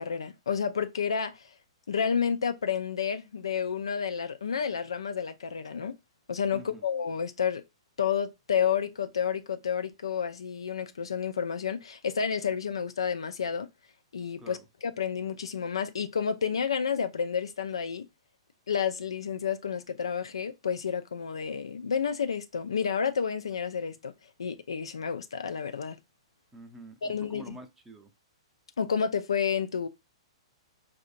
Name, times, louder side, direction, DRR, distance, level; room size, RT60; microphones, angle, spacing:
voice 1, 0.0-1.4 1.9-5.9 6.3-7.6 8.0-13.7 14.1-14.6 14.8-18.1 18.7-24.1 24.4-26.0 27.0-27.5 28.8-29.9, left 7 dB, 70° left, 0.4 m, -30 dB
voice 2, 6.5-6.8 14.4-14.6 26.5-28.1, right 1 dB, 10° right, 0.6 m, -47 dB
4.6 x 2.5 x 2.5 m
figure-of-eight pair, 110°, 3 cm